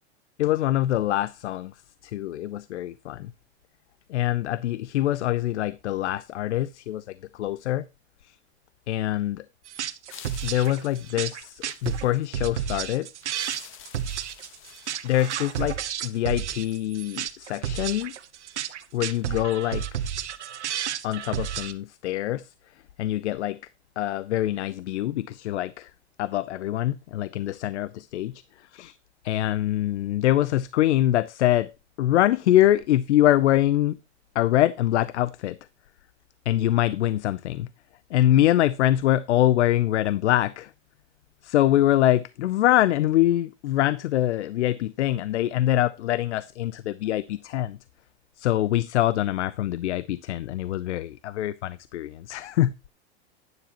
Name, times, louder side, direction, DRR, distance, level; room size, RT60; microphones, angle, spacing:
voice 1, 0.4-1.7 2.0-3.3 4.1-7.8 8.2-8.4 8.9-9.5 10.4-13.1 15.0-18.1 18.9-19.8 21.0-22.5 23.0-23.6 24.0-25.9 26.2-29.0 29.2-31.7 32.0-34.0 34.3-35.6 36.5-37.7 38.1-40.7 41.4-47.8 48.4-52.7, left 13 dB, 85° left, 0.6 m, -24 dB
sound 1, 9.6-21.7, right 9 dB, 90° right, 1.1 m, -31 dB
sound 2, 10.1-12.2 13.2-16.2, left 10 dB, 35° left, 1.4 m, -49 dB
11.5 x 9.7 x 2.9 m
hypercardioid pair, 115°, 34 cm